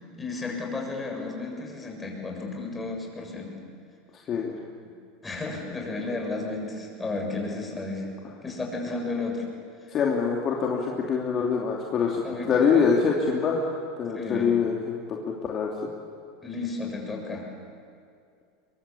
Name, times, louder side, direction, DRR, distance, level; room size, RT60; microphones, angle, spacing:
voice 1, 0.2-3.6 4.8-4.9 5.2-8.1 8.4-9.5 9.8-10.0 12.2-12.7 14.1-14.5 16.4-17.5, left 3 dB, 15° left, 0 dB, 7.1 m, -33 dB
voice 2, 9.9-12.2 12.5-15.7, left 5 dB, 40° left, -1 dB, 2.9 m, -25 dB
23.5 x 22.5 x 8.6 m, 2.3 s
supercardioid pair, 115°, 0 cm